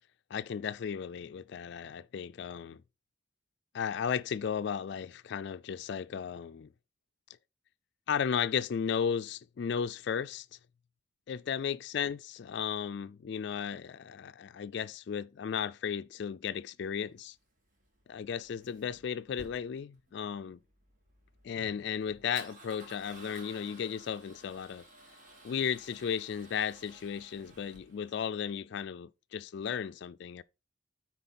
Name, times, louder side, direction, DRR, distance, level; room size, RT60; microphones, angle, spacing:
voice 1, 0.3-2.8 3.7-6.7 8.1-10.5 11.3-17.4 18.1-20.6 21.4-24.8 25.4-30.4, left 7 dB, 60° left, 0.3 m, -35 dB
Male speech man speaking / Car / Engine starting, 17.0-28.1, right 2 dB, 40° right, 2.1 m, -55 dB
9.0 x 4.3 x 4.2 m
head